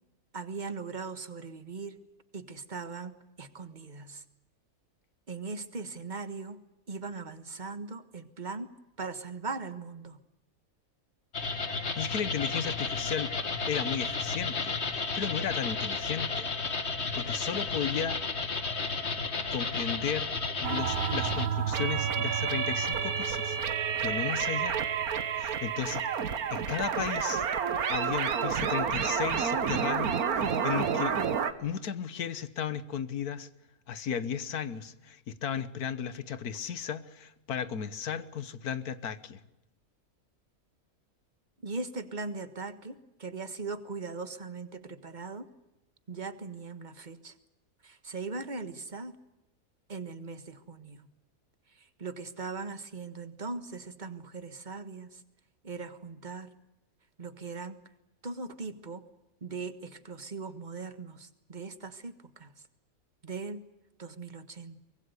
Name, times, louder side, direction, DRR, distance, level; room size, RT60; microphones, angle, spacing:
voice 1, 0.3-2.0 2.3-4.2 5.3-10.2 41.6-45.5 46.1-47.3 47.8-49.2 49.9-51.1 51.7-55.2 55.6-56.5 57.2-57.8 58.2-59.1 59.4-62.5 63.2-63.7 64.0-64.8, right 4 dB, 30° right, 11 dB, 1.6 m, -40 dB
sound 1, 11.3-21.5, left 4 dB, 45° left, 2.0 m, -33 dB
voice 2, 12.0-13.3 13.7-16.5 17.1-18.2 19.5-20.3 20.6-23.6 24.0-24.8 25.4-26.0 26.5-27.5 27.9-31.2 31.6-33.5 33.9-39.4, left 8 dB, 90° left, 14 dB, 1.6 m, -35 dB
sound 2, 20.6-31.5, right 7 dB, 80° right, 1.8 m, -29 dB
24.5 x 21.5 x 8.2 m, 0.94 s
omnidirectional pair, 1.6 m